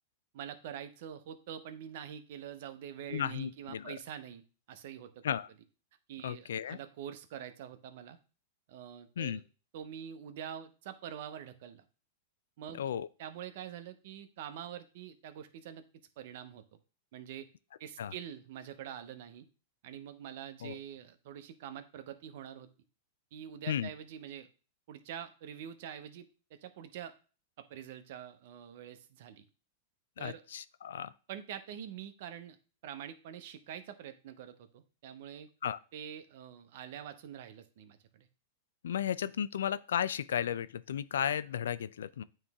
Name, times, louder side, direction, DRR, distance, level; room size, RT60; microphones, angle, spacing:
voice 1, 0.3-5.2 6.1-8.2 8.7-9.4 9.7-11.9 12.6-12.9 13.2-15.8 16.2-16.6 17.1-17.5 17.8-19.5 19.8-22.7 23.3-24.5 24.9-27.1 27.6-29.5 30.2-30.4 31.3-32.6 32.8-35.5 35.9-38.3, right 9 dB, 60° right, 0.8 m, -45 dB
voice 2, 3.1-4.0 5.2-5.5 6.2-6.8 9.2-9.4 12.7-13.1 18.0-18.1 20.6-20.8 23.7-23.9 30.2-31.1 35.6-35.8 38.8-42.2, left 9 dB, 80° left, 0.4 m, -34 dB
8.9 x 3.2 x 3.5 m
hypercardioid pair, 120°, 0 cm